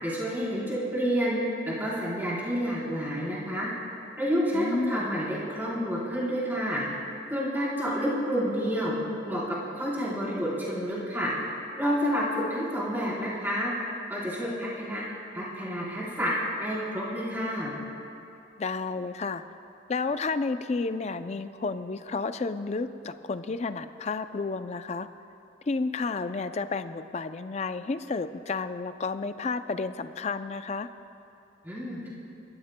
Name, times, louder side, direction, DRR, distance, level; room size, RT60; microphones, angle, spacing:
voice 1, 0.0-1.4 1.6-3.7 4.2-6.8 7.3-8.9 9.3-11.3 11.8-13.7 14.1-15.0 15.3-16.3 16.6-17.7 31.6-32.1, equal, 10° right, -8 dB, 3.8 m, -29 dB
voice 2, 4.5-5.1 18.6-19.4 19.9-25.1 25.7-30.9, left 4 dB, 35° left, 11 dB, 0.4 m, -31 dB
29.5 x 13.5 x 2.2 m, 2.7 s
head